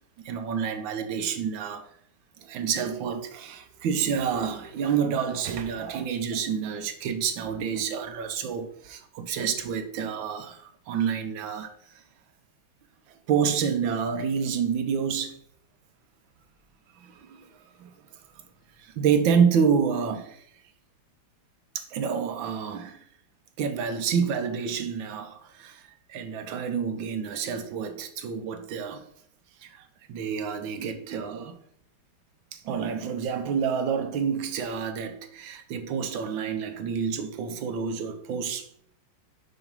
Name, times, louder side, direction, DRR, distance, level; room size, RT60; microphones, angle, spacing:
voice 1, 0.2-1.9 2.4-11.7 13.3-15.4 17.0-17.9 18.8-20.4 21.7-23.0 23.6-29.0 29.6-31.6 32.5-38.7, right 7 dB, 75° right, 1.4 m, -28 dB
6.0 x 3.5 x 5.3 m
omnidirectional pair, 2.3 m